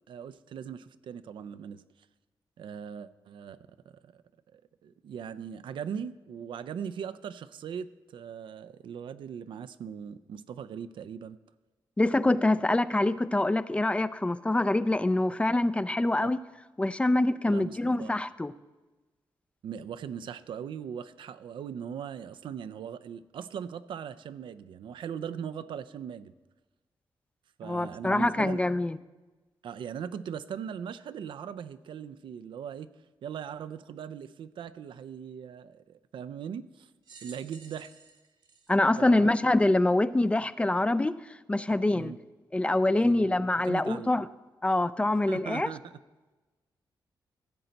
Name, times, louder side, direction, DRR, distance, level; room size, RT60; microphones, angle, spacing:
voice 1, 0.1-1.8 2.6-3.6 4.0-4.2 4.5-11.4 16.2-16.3 17.5-18.2 19.6-26.3 27.6-28.6 29.6-32.9 33.2-36.9 37.2-37.9 39.0-39.4 41.9-42.2 43.0-43.4 43.6-44.1 45.1-45.8, right 8 dB, 85° right, 13 dB, 0.4 m, -39 dB
voice 2, 12.0-16.4 16.8-18.5 27.6-29.0 38.7-41.1 41.5-42.1 42.5-44.3 44.6-45.7, left 2 dB, 15° left, 15 dB, 0.3 m, -25 dB
sound 1, 37.0-39.7 40.4-40.5 41.6-41.7, right 5 dB, 65° right, 1.3 m, -54 dB
14.5 x 7.6 x 4.0 m, 1.2 s
cardioid pair, 100°, 8 cm